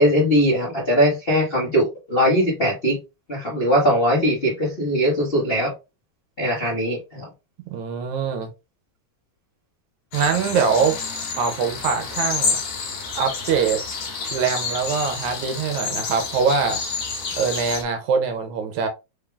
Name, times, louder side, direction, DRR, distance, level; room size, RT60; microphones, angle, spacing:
voice 1, 0.0-3.0 3.3-5.7 6.4-7.3, equal, 75° left, 0.5 m, -20 dB
voice 2, 7.7-8.5 10.1-11.1 11.4-12.6 13.2-13.8 14.3-16.8 17.4-18.9, right 6 dB, 75° right, 1.9 m, -23 dB
sound 1, 10.1-17.8, left 5 dB, 60° left, 2.6 m, -29 dB
5.2 x 3.5 x 2.3 m
omnidirectional pair, 3.7 m